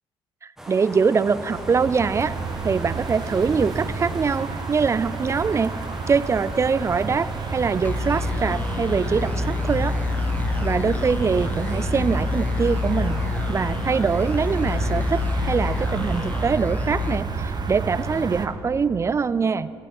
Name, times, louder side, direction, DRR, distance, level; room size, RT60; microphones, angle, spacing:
voice 1, 0.4-2.4 2.6-5.8 6.1-10.0 10.6-19.7, right 5 dB, 30° right, 17 dB, 0.4 m, -23 dB
sound 1, 0.6-16.5, equal, 5° right, 1.8 m, -40 dB
sound 2, 1.2-18.5, right 4 dB, 50° right, 0.9 m, -30 dB
sound 3, 7.8-18.1, left 4 dB, 15° left, 0.6 m, -28 dB
9.7 x 9.0 x 7.7 m, 2.9 s
cardioid pair, 75°, 9 cm